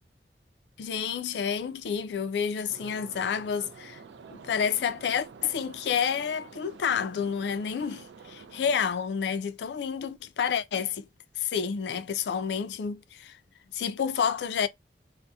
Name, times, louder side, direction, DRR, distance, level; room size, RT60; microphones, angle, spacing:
voice 1, 0.8-4.0 4.3-11.1 11.4-13.4 13.7-14.7, left 7 dB, 75° left, 0.3 m, -29 dB
sound 1, 2.7-8.8, right 5 dB, 85° right, 0.3 m, -49 dB
2.6 x 2.1 x 2.3 m
head